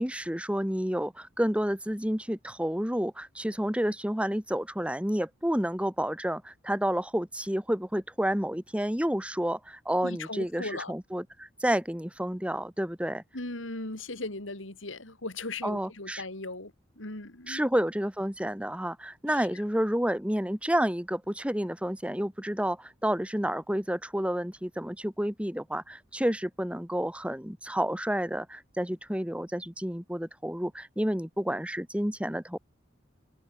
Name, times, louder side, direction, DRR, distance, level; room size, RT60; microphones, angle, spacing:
voice 1, 0.0-13.2 15.6-16.2 17.5-32.6, equal, 5° right, 3.2 m, -30 dB
voice 2, 10.0-10.9 13.3-16.7 17.0-17.6 19.3-19.4, left 2 dB, 85° left, 3.9 m, -38 dB
head